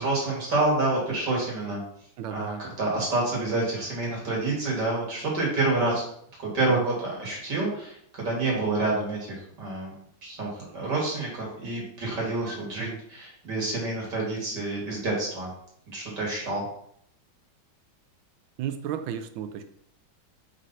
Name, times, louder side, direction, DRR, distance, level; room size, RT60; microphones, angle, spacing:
voice 1, 0.0-1.8 2.3-6.0 6.4-9.9 10.2-15.5 15.9-16.6, right 2 dB, 60° right, -3 dB, 2.5 m, -28 dB
voice 2, 2.2-2.6 6.7-7.0 12.8-13.0 18.6-19.6, right 9 dB, 75° right, 9 dB, 1.3 m, -34 dB
5.1 x 4.0 x 5.4 m, 0.68 s
omnidirectional pair, 2.2 m